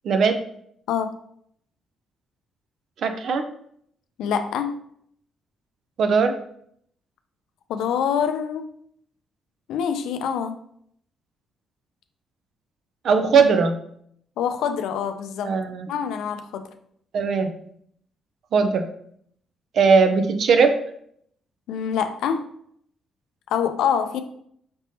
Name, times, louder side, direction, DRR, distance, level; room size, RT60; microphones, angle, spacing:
voice 1, 0.0-0.4 3.0-3.4 6.0-6.3 13.0-13.7 15.4-15.9 17.1-17.5 18.5-18.9 19.7-20.8, right 5 dB, 65° right, 7 dB, 0.6 m, -19 dB
voice 2, 4.2-4.7 7.7-8.7 9.7-10.6 14.4-15.6 15.9-16.7 21.7-22.5 23.5-24.2, left 8 dB, 85° left, 8 dB, 0.4 m, -25 dB
5.1 x 3.4 x 2.7 m, 0.67 s
cardioid pair, 90°, 0 cm